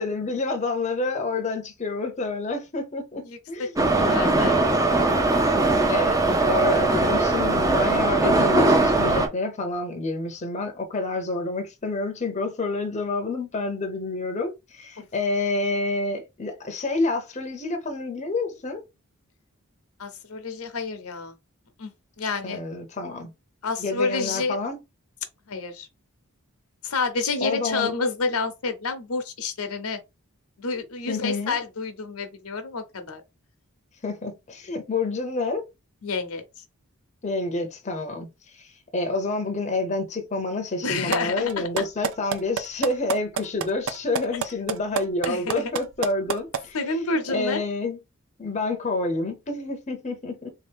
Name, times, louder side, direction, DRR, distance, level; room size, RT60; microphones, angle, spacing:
voice 1, 0.0-4.2 5.9-18.8 22.4-23.3 23.8-24.8 27.4-27.9 31.1-31.6 34.0-35.7 37.2-46.8 47.3-48.0 48.4-50.5, left 3 dB, 30° left, 0.7 m, -28 dB
Subway metro underground, 3.8-9.3, right 2 dB, 15° right, 0.5 m, -20 dB
voice 2, 4.0-4.6 15.0-15.1 20.0-21.3 21.8-21.9 22.2-22.6 23.6-24.6 25.5-25.9 26.8-30.0 30.6-33.2 36.0-36.4 40.8-41.7 45.2-45.7 46.7-47.6, left 4 dB, 75° left, 0.8 m, -29 dB
sound 1, 41.1-41.2 41.5-46.6, right 7 dB, 65° right, 0.5 m, -26 dB
3.5 x 2.8 x 3.4 m
head